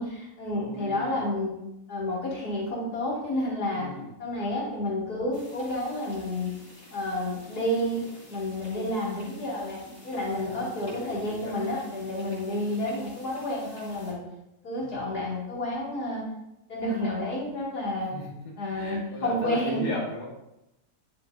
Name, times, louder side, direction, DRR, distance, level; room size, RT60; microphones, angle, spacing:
voice 1, 0.0-1.5 1.9-3.9 4.2-6.5 6.9-8.0 8.3-9.8 10.0-14.2 14.6-16.2 16.7-18.1 18.6-19.9, left 1 dB, 60° left, -6 dB, 3.1 m, -30 dB
voice 2, 0.5-1.3 3.7-4.2 10.3-11.6 14.8-15.2 18.1-18.3 18.7-20.3, left 1 dB, 25° left, -6 dB, 1.8 m, -38 dB
sound 1, 5.3-14.1, left 2 dB, 90° left, 3.4 m, -50 dB
10.0 x 6.7 x 2.7 m, 0.89 s
omnidirectional pair, 1.8 m